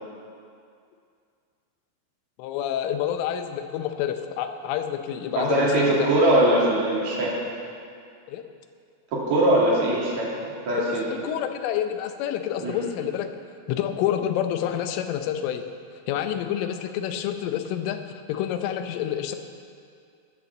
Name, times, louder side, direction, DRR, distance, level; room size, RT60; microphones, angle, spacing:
voice 1, 2.4-6.1 8.3-8.4 11.1-13.3 13.7-15.6 16.1-18.0 18.3-19.4, left 10 dB, 90° left, 7 dB, 3.3 m, -28 dB
voice 2, 5.4-7.3 9.1-10.3 10.7-11.0 12.6-12.8, right 1 dB, 45° right, -5 dB, 3.0 m, -21 dB
17.0 x 6.9 x 7.1 m, 2.3 s
omnidirectional pair, 5.5 m